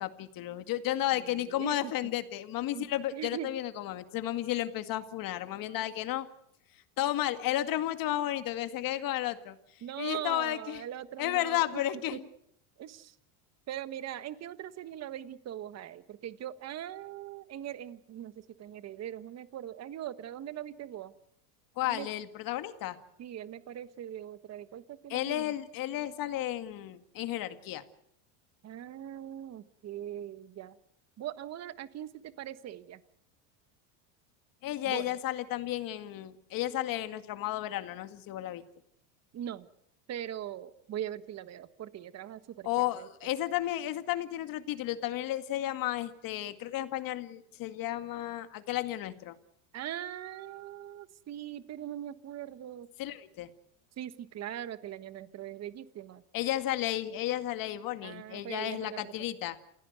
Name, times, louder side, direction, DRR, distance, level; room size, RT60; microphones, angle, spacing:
voice 1, 0.0-6.3 7.0-9.6 10.0-10.8 11.2-12.3 21.8-23.0 25.1-27.8 34.6-38.6 42.6-49.4 53.0-53.5 56.3-59.6, left 14 dB, 50° left, 9 dB, 2.1 m, -33 dB
voice 2, 3.1-3.5 9.8-11.6 12.1-12.2 12.8-13.0 13.7-18.3 18.6-21.1 21.8-22.1 23.2-25.5 28.6-30.7 31.2-32.1 32.4-33.0 34.8-35.0 39.3-39.6 40.1-42.9 49.7-52.9 54.0-56.2 58.0-59.0, right 11 dB, 35° right, 13 dB, 1.4 m, -41 dB
28.5 x 16.5 x 8.1 m, 0.74 s
supercardioid pair, 110°, 43 cm